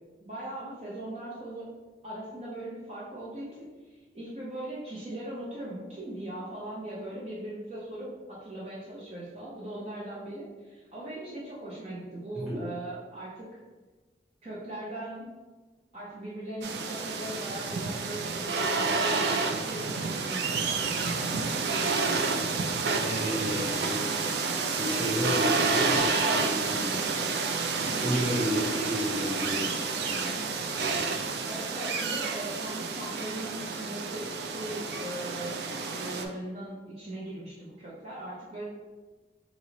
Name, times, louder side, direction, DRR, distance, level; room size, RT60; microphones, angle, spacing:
voice 1, 0.2-1.7 2.0-13.5 14.4-15.3 15.9-21.7 31.4-35.6 36.0-38.6, right 1 dB, 35° right, -7 dB, 0.7 m, -39 dB
sound 1, 16.6-36.2, right 4 dB, 70° right, 0.4 m, -29 dB
voice 2, 22.9-24.0 24.7-26.1 26.5-27.0 27.9-29.6 30.0-30.3 30.6-30.8, equal, 5° right, -9 dB, 1.4 m, -31 dB
3.1 x 2.9 x 3.9 m, 1.3 s
head